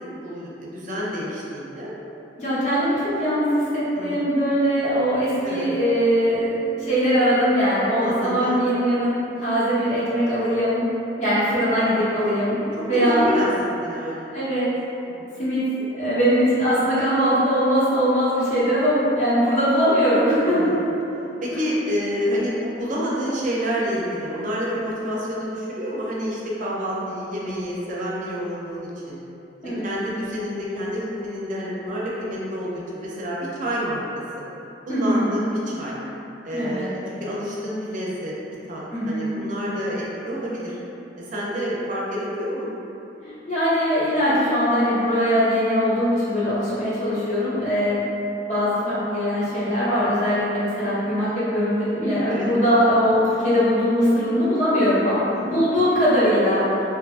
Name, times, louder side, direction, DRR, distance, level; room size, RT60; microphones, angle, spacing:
voice 1, 0.0-1.9 3.9-4.3 5.4-5.6 8.0-8.6 12.9-14.3 15.2-15.3 20.5-20.9 21.4-29.2 29.8-34.0 34.9-36.0 36.4-38.3 38.7-40.8 41.2-42.7 52.3-52.5 55.3-55.6, equal, 45° right, -6 dB, 0.4 m, -28 dB
voice 2, 2.4-10.8 11.2-12.6 12.9-13.3 14.3-14.7 15.4-15.6 15.9-20.7 29.6-29.9 34.9-35.4 36.5-36.9 38.9-39.4 43.2-48.0 48.5-56.8, equal, 45° left, -10 dB, 0.8 m, -21 dB
2.6 x 2.3 x 2.4 m, 2.9 s
head